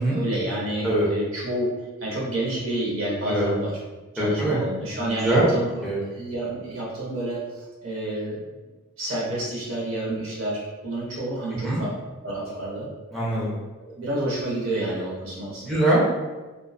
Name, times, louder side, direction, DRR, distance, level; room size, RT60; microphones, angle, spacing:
voice 1, 0.1-1.7 2.0-3.7 4.1-5.7 6.1-8.5 9.0-11.9 12.2-12.9 13.9-15.8, right 1 dB, 70° right, -5 dB, 0.8 m, -29 dB
voice 2, 4.2-4.6 5.0-5.5 5.8-6.0 11.5-11.8 13.1-13.5 15.6-16.1, right 1 dB, ahead, -8 dB, 0.5 m, -23 dB
2.5 x 2.2 x 2.3 m, 1.2 s
head